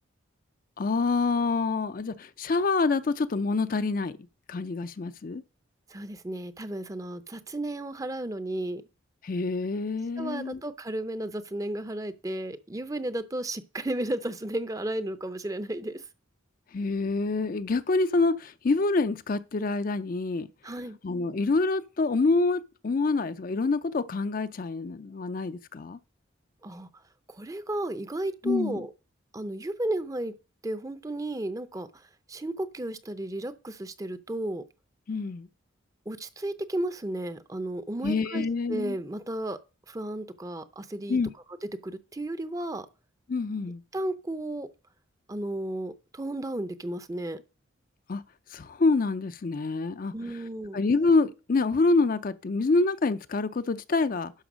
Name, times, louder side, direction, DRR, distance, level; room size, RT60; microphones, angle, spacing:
voice 1, 0.8-4.1 4.5-5.4 9.2-10.6 16.7-20.5 21.0-26.0 28.4-28.8 35.1-35.5 38.0-39.0 41.1-41.3 43.3-43.8 48.1-48.2 48.5-50.1 50.7-54.3, left 3 dB, 45° left, 0.4 m, -26 dB
voice 2, 5.9-8.8 10.2-16.1 20.6-21.0 26.6-26.9 27.3-28.9 29.3-30.3 30.6-34.6 36.1-39.6 39.9-41.2 41.8-42.9 43.9-44.7 45.3-47.4 50.1-50.8, right 1 dB, 15° right, 0.6 m, -33 dB
11.5 x 4.4 x 6.1 m
head